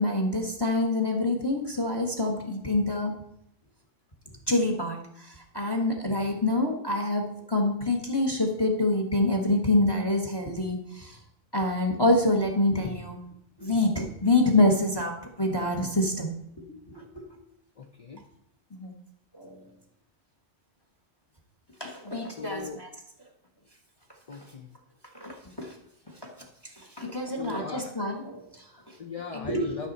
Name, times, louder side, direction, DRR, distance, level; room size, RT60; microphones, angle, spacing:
voice 1, 0.0-3.1 4.5-11.2 11.5-13.2 13.6-16.4 16.7-17.2 18.7-18.9 19.3-19.6 21.8-22.9 25.1-25.7 26.2-26.3 26.8-29.0 29.3-29.8, left 2 dB, 20° left, 3 dB, 1.2 m, -26 dB
voice 2, 17.8-18.2 22.4-22.8 24.3-24.7 26.3-26.5 27.3-27.9 29.0-29.9, left 4 dB, 35° left, 3 dB, 0.7 m, -39 dB
12.0 x 5.9 x 4.1 m, 0.73 s
omnidirectional pair, 1.3 m